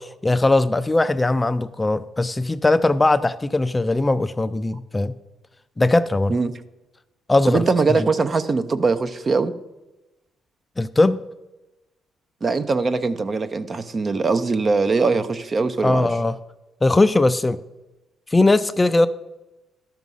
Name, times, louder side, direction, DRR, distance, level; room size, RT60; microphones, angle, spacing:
voice 1, 0.0-5.1 5.8-6.4 7.3-7.6 10.8-11.2 15.8-16.4 16.8-17.6 18.3-19.1, left 2 dB, 20° left, 0.4 m, -19 dB
voice 2, 7.5-9.5 12.4-16.1, right 4 dB, 35° right, 0.6 m, -21 dB
12.5 x 6.0 x 5.4 m
cardioid pair, 90°, 0 cm